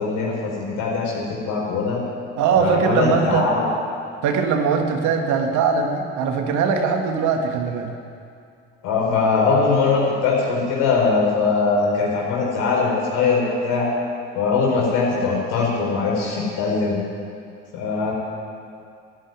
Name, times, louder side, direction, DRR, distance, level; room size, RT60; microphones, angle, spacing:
voice 1, 0.0-2.0 2.5-3.7 8.8-13.9 14.3-17.0 17.7-18.1, left 4 dB, 80° left, -3 dB, 4.9 m, -21 dB
voice 2, 2.4-3.5 4.2-7.9, right 5 dB, 70° right, 4 dB, 1.9 m, -21 dB
12.5 x 10.0 x 9.6 m, 2.3 s
hypercardioid pair, 60°, 31 cm